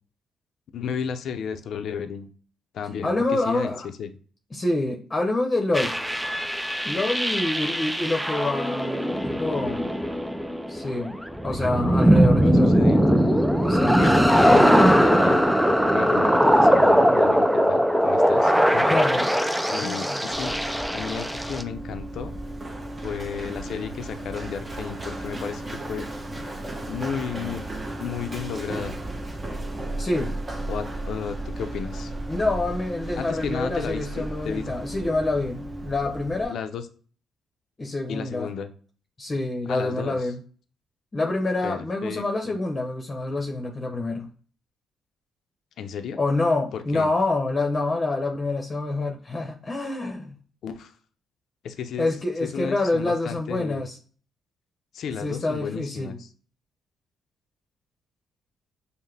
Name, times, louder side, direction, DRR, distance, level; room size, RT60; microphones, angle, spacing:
voice 1, 0.7-2.3 2.7-3.7 4.0-4.1 12.1-13.2 14.0-15.6 15.9-18.9 19.4-20.5 20.9-22.4 23.0-26.1 26.9-27.6 28.0-29.0 30.7-32.1 33.1-34.6 36.5-36.8 38.1-38.7 39.7-40.3 41.6-42.6 45.8-46.2 46.7-47.1 50.6-50.9 51.6-52.1 52.4-53.8 54.9-56.3, left 7 dB, 70° left, 8 dB, 0.6 m, -33 dB
voice 2, 3.0-3.9 4.5-5.9 6.8-9.9 10.7-12.8 13.7-14.0 18.9-19.3 19.8-20.2 30.0-30.3 32.3-36.6 37.8-38.5 39.2-40.4 41.1-44.3 46.2-50.4 52.0-54.0 55.2-56.2, left 2 dB, 25° left, 2 dB, 0.8 m, -27 dB
sound 1, 5.7-21.6, equal, 5° right, 0.4 m, -20 dB
Run, 20.3-36.4, right 1 dB, 25° right, 0.9 m, -34 dB
5.6 x 2.1 x 3.4 m, 0.41 s
cardioid pair, 90°, 0 cm